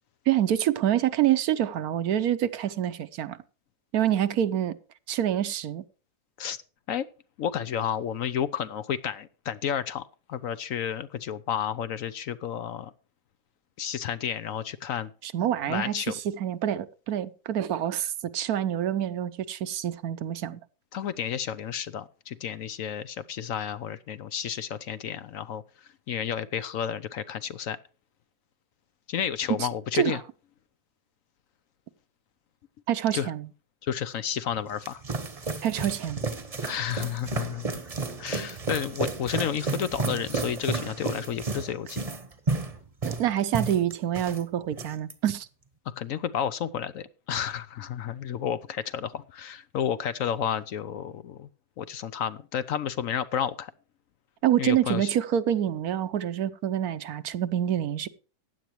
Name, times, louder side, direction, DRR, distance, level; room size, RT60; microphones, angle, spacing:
voice 1, 0.3-3.4 3.9-4.8 5.1-5.8 15.2-20.6 29.5-29.7 29.9-30.2 32.9-33.5 35.6-36.2 43.0-45.5 54.4-58.1, right 11 dB, 70° right, 1.2 m, -26 dB
voice 2, 7.4-12.9 13.8-15.1 15.7-16.1 20.9-25.6 26.1-27.8 29.1-30.2 33.1-33.3 33.8-35.0 36.6-37.8 38.2-42.0 46.0-51.5 51.8-53.7 54.6-55.1, left 9 dB, 65° left, 1.0 m, -31 dB
sound 1, 34.5-44.4 44.7-45.1, right 4 dB, 25° right, 1.0 m, -32 dB
15.5 x 10.5 x 3.1 m
omnidirectional pair, 1.7 m